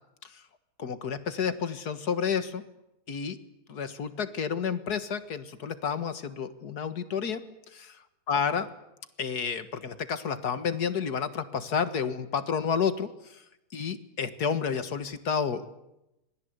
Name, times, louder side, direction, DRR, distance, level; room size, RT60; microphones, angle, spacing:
voice 1, 0.8-2.6 3.1-3.4 3.7-7.4 7.7-8.7 9.2-13.4 13.7-15.7, left 6 dB, 80° left, 11 dB, 2.2 m, -30 dB
26.5 x 21.0 x 8.1 m, 0.89 s
omnidirectional pair, 1.7 m